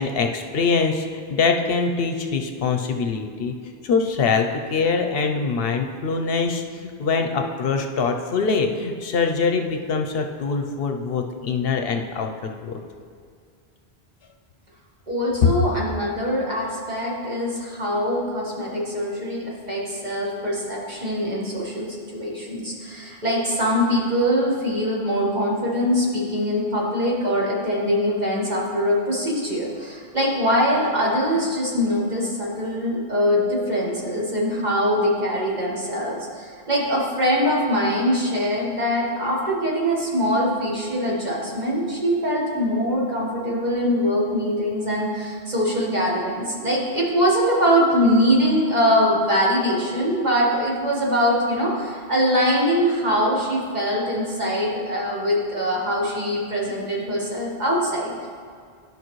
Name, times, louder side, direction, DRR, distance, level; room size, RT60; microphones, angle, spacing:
voice 1, 0.0-3.5 3.8-12.8 15.4-15.5, left 5 dB, 70° left, 4 dB, 0.8 m, -23 dB
voice 2, 15.1-58.3, equal, 45° right, -4 dB, 1.6 m, -23 dB
12.5 x 5.2 x 3.1 m, 2.1 s
omnidirectional pair, 1.1 m